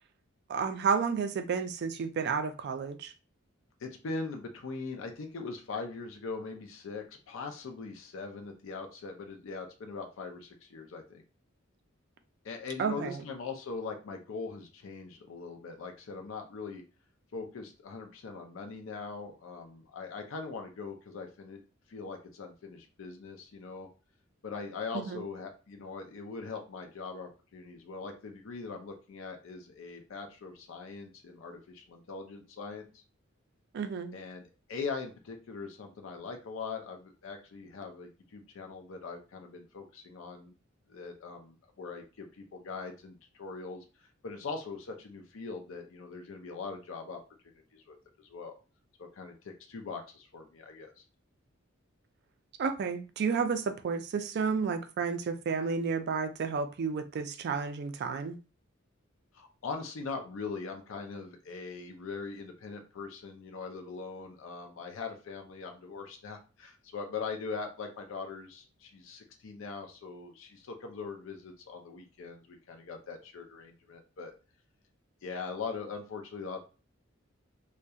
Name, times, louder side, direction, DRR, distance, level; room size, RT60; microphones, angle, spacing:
voice 1, 0.5-3.1 12.8-13.2 25.0-25.2 33.7-34.2 52.6-58.4, right 5 dB, 55° right, 0.3 m, -31 dB
voice 2, 3.8-11.2 12.4-16.8 17.3-21.6 21.9-23.9 24.4-33.0 34.1-34.4 34.7-40.5 40.9-47.2 47.7-48.5 49.0-51.0 59.3-74.3 75.2-76.6, left 4 dB, 70° left, 0.4 m, -41 dB
2.7 x 2.2 x 2.3 m
head